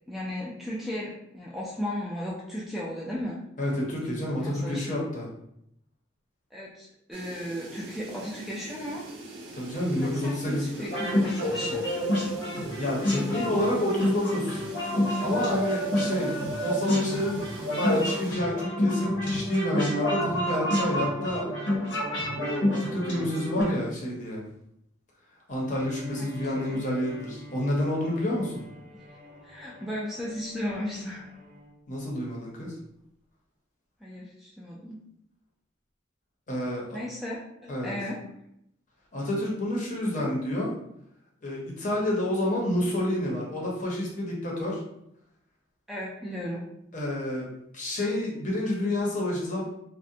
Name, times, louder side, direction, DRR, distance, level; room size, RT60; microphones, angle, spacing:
voice 1, 0.1-3.4 4.2-5.0 6.5-9.0 10.0-11.8 16.1-16.3 26.2-26.8 28.9-29.0 29.4-31.3 34.0-35.0 36.9-38.2 45.9-46.6, left 1 dB, ahead, -6 dB, 0.3 m, -36 dB
voice 2, 3.6-5.3 9.6-10.9 12.8-14.6 15.2-16.3 16.6-21.4 22.3-24.4 25.5-28.6 31.9-32.7 36.5-37.0 37.7-37.9 39.1-40.7 41.4-44.8 46.9-49.6, left 1 dB, 45° left, -3 dB, 0.7 m, -29 dB
sound 1, 7.1-18.3, right 2 dB, 90° right, 0.5 m, -43 dB
sound 2, 10.9-23.6, left 1 dB, 85° left, 0.9 m, -28 dB
Bowed string instrument, 25.7-31.8, left 1 dB, 45° right, 0.6 m, -45 dB
2.4 x 2.1 x 2.7 m, 0.77 s
head